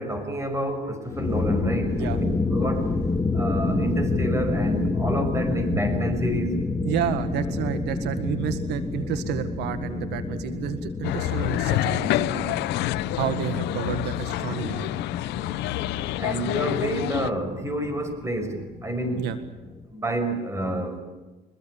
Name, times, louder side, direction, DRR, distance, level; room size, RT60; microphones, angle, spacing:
voice 1, 0.0-2.2 2.5-2.9 3.3-6.6 16.2-19.3 19.9-21.0, right 1 dB, 15° right, 7 dB, 5.7 m, -28 dB
sound 1, 1.0-19.9, left 3 dB, 15° left, 1.9 m, -29 dB
voice 2, 6.8-12.6 13.2-14.9 19.2-19.4, right 9 dB, 85° right, 10 dB, 1.8 m, -30 dB
sound 2, 11.0-17.3, left 15 dB, 90° left, 0.8 m, -27 dB
24.0 x 22.0 x 8.5 m, 1.2 s
cardioid pair, 110°, 17 cm